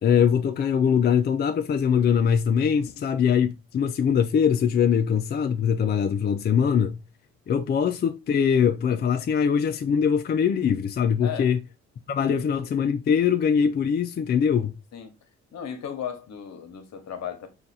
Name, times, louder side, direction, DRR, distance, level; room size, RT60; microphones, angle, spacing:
voice 1, 0.0-7.0 7.5-11.6 12.1-14.7, left 7 dB, 35° left, 0.4 m, -22 dB
voice 2, 15.5-17.5, left 8 dB, 60° left, 1.0 m, -35 dB
3.9 x 2.4 x 4.1 m
cardioid pair, 90°, 30 cm